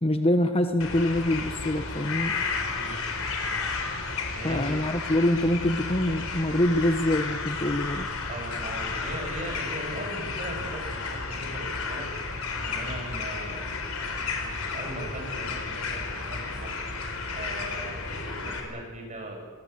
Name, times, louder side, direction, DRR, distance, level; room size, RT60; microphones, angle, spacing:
voice 1, 0.0-2.3 4.4-8.1, left 1 dB, 25° left, 7 dB, 1.2 m, -25 dB
sound 1, 0.8-18.6, left 4 dB, 75° left, 4.4 m, -32 dB
voice 2, 4.3-4.9 8.3-12.1 12.6-13.8 14.4-16.8 17.3-19.4, right 1 dB, 35° right, 1 dB, 7.5 m, -39 dB
26.0 x 20.0 x 8.5 m, 1.5 s
head